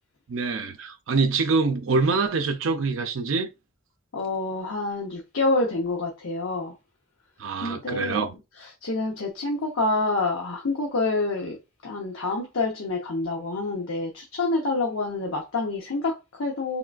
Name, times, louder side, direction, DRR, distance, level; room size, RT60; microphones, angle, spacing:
voice 1, 0.3-3.5 7.4-8.3, right 4 dB, 70° right, 0.5 m, -25 dB
voice 2, 4.1-6.7 7.6-16.8, left 2 dB, 80° left, 0.8 m, -27 dB
3.7 x 2.4 x 2.3 m
head